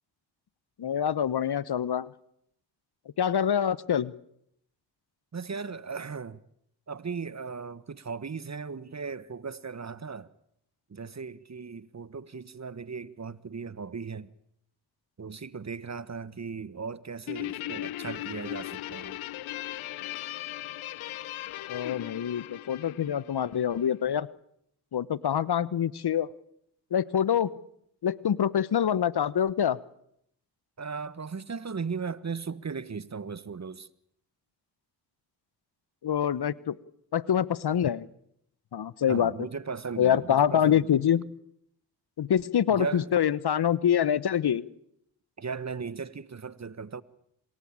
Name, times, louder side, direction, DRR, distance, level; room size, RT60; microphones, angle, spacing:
voice 1, 0.8-2.1 3.2-4.1 21.7-24.3 24.9-26.3 26.9-27.5 28.0-29.8 36.0-36.7 37.1-38.1 38.7-39.3 40.0-41.2 42.2-44.7, left 9 dB, 50° left, 1.1 m, -25 dB
voice 2, 5.3-6.4 6.9-10.3 10.9-14.3 15.2-19.2 30.8-33.9 39.1-40.9 42.7-43.1 45.4-47.0, right 5 dB, 35° right, 1.4 m, -37 dB
Guitar, 17.3-24.0, left 15 dB, 75° left, 1.0 m, -38 dB
27.5 x 19.5 x 8.8 m
supercardioid pair, 45°, 48 cm